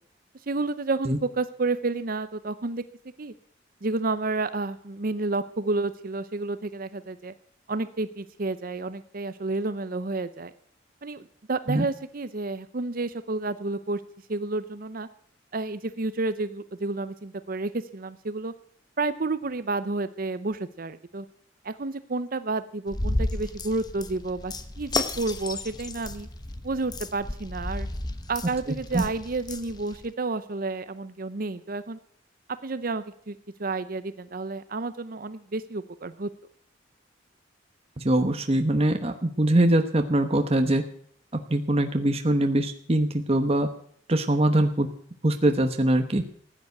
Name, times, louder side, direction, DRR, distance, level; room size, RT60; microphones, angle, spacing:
voice 1, 0.5-2.8 3.2-3.3 3.8-7.3 7.7-10.5 11.0-14.0 14.3-15.1 15.5-18.5 19.0-21.3 21.6-26.3 26.6-27.9 28.3-32.0 32.6-36.3, right 3 dB, 50° right, 13 dB, 0.7 m, -30 dB
sound 1, 22.9-30.1, left 2 dB, 20° left, 1.0 m, -33 dB
voice 2, 38.0-40.8 41.3-43.7 44.1-44.9 45.2-46.2, right 1 dB, 30° right, 6 dB, 1.1 m, -23 dB
15.5 x 9.7 x 7.9 m, 0.63 s
head